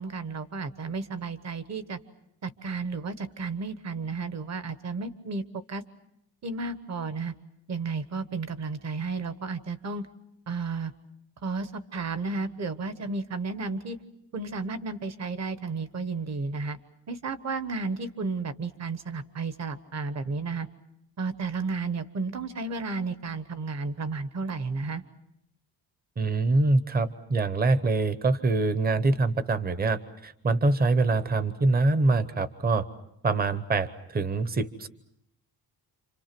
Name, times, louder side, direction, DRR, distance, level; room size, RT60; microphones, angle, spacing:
voice 1, 0.0-2.0 2.4-5.4 5.7-5.8 6.4-7.3 7.7-10.1 10.5-10.9 11.4-14.0 14.3-16.8 17.1-20.7 21.2-25.0, right 4 dB, 40° right, 12 dB, 1.3 m, -32 dB
voice 2, 26.2-32.9 33.2-34.9, right 3 dB, 25° right, 14 dB, 0.9 m, -24 dB
28.5 x 26.5 x 6.0 m, 0.77 s
cardioid pair, 170°, 39 cm